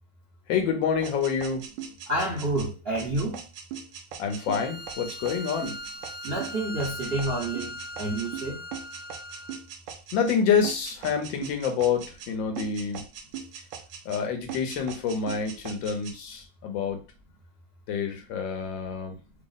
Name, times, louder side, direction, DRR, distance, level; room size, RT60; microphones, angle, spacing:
voice 1, 0.5-1.7 4.2-5.7 10.1-13.0 14.0-17.0 17.9-19.2, left 6 dB, 80° left, 1.5 m, -27 dB
sound 1, 1.0-10.4 10.6-12.3 12.6-14.2 14.5-16.2, right 8 dB, 75° right, 1.2 m, -40 dB
voice 2, 2.1-3.4 6.2-8.6, right 2 dB, 55° right, 0.7 m, -29 dB
Bowed string instrument, 4.3-9.7, left 1 dB, 55° left, 0.6 m, -40 dB
3.5 x 2.1 x 3.8 m
omnidirectional pair, 2.1 m